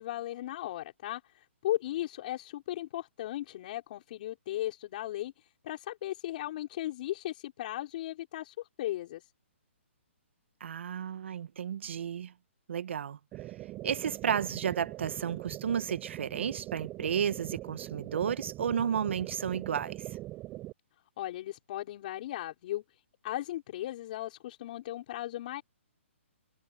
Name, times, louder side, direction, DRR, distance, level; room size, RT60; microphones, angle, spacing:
voice 1, 0.0-5.3 5.6-9.2 21.2-22.8 23.2-25.6, left 14 dB, 40° left, 5.5 m, -36 dB
voice 2, 10.6-12.3 12.7-13.2 13.8-20.0, right 8 dB, 65° right, 1.3 m, -32 dB
sound 1, 13.3-20.7, right 17 dB, 20° right, 4.5 m, -42 dB
hypercardioid pair, 160°, 7 cm